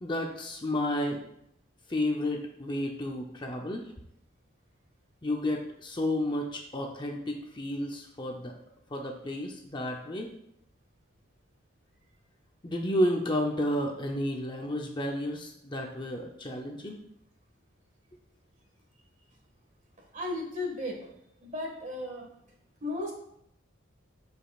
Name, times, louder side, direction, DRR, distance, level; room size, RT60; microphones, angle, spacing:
voice 1, 0.0-1.2 1.9-3.9 5.2-8.5 8.9-10.3 12.6-17.0, left 1 dB, 25° left, 1 dB, 0.6 m, -31 dB
voice 2, 20.1-21.1 21.4-22.3 22.8-23.1, left 2 dB, 35° right, 0 dB, 1.7 m, -35 dB
12.0 x 5.2 x 2.4 m, 0.75 s
head